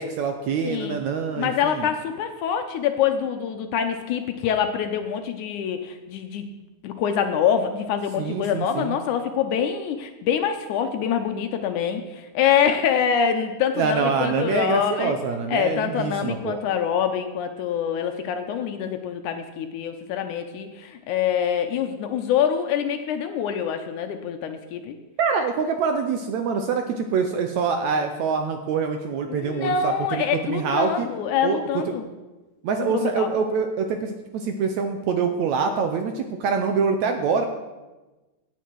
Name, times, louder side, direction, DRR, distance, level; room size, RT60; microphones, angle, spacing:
voice 1, 0.0-1.9 8.2-9.0 13.8-16.6 25.2-31.1 31.4-31.6 31.9-32.0 32.6-37.5, right 5 dB, 70° right, 6 dB, 1.8 m, -25 dB
voice 2, 0.6-1.0 1.4-6.5 6.8-15.2 15.5-24.9 29.3-32.0 32.9-33.3, left 8 dB, 75° left, 7 dB, 2.0 m, -25 dB
16.5 x 9.3 x 4.6 m, 1.1 s
omnidirectional pair, 4.0 m